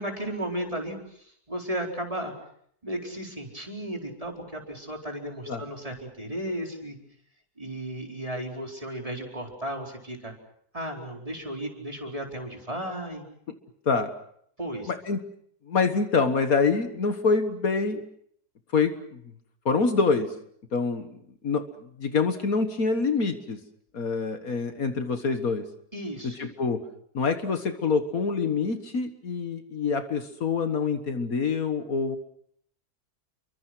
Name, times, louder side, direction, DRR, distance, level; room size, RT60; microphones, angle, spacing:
voice 1, 0.0-2.3 2.8-7.0 7.6-10.3 10.7-13.3 14.6-14.9 25.9-26.5, right 1 dB, 20° right, 1 dB, 4.5 m, -34 dB
voice 2, 14.9-15.2 15.7-18.0 18.7-19.2 19.7-20.3 20.7-21.7 22.0-23.6 23.9-25.6 26.2-26.8 27.1-32.2, left 4 dB, 65° left, 8 dB, 1.9 m, -26 dB
29.5 x 24.0 x 6.2 m, 0.69 s
omnidirectional pair, 1.7 m